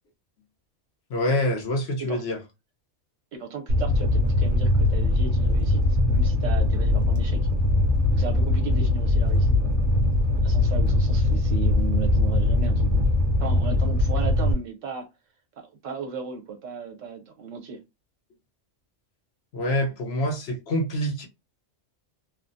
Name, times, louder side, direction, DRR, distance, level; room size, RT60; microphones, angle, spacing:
voice 1, 1.1-2.4 19.5-21.3, left 1 dB, 60° left, 1.0 m, -26 dB
voice 2, 3.3-7.4 8.1-9.7 10.4-13.1 13.4-15.1 15.6-17.8, right 5 dB, 80° right, 1.2 m, -36 dB
Fire, 3.7-14.5, left 2 dB, 50° right, 0.9 m, -21 dB
3.0 x 2.0 x 2.6 m
omnidirectional pair, 1.3 m